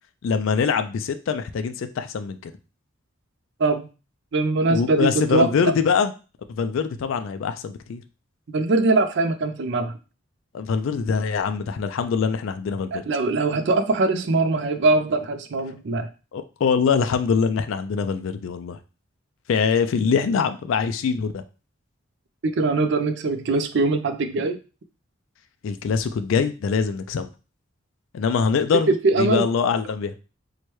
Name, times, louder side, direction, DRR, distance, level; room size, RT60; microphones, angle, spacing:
voice 1, 0.2-2.5 4.7-6.1 6.5-8.0 10.5-13.0 16.3-18.8 19.5-21.4 25.6-27.3 28.1-28.9 29.2-30.1, left 5 dB, 70° left, 9 dB, 0.3 m, -23 dB
voice 2, 4.3-5.7 8.5-9.9 12.9-16.1 22.4-24.6 28.9-29.5, right 3 dB, 55° right, 8 dB, 0.4 m, -22 dB
4.5 x 2.2 x 3.0 m, 0.33 s
head